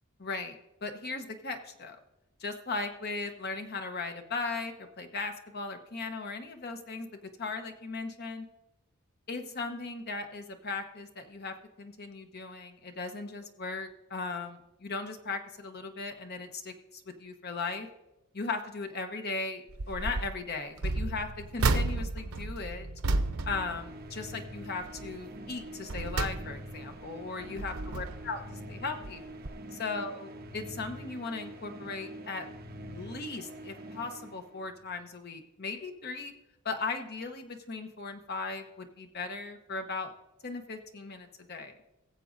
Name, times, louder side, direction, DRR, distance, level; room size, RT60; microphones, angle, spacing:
voice 1, 0.2-2.0 2.4-8.5 9.3-17.9 18.3-22.9 23.4-29.2 29.8-32.5 32.9-36.3 36.6-40.1 40.4-41.8, left 3 dB, 50° left, 6 dB, 1.0 m, -37 dB
sound 1, 19.7-20.3 20.8-24.5 24.8-25.1 25.6-26.9 27.4-28.4 29.0-29.2 29.4-29.5, right 3 dB, 90° right, 0.7 m, -32 dB
sound 2, 23.1-34.9, right 1 dB, 45° right, 1.1 m, -45 dB
20.0 x 7.5 x 2.7 m, 0.97 s
head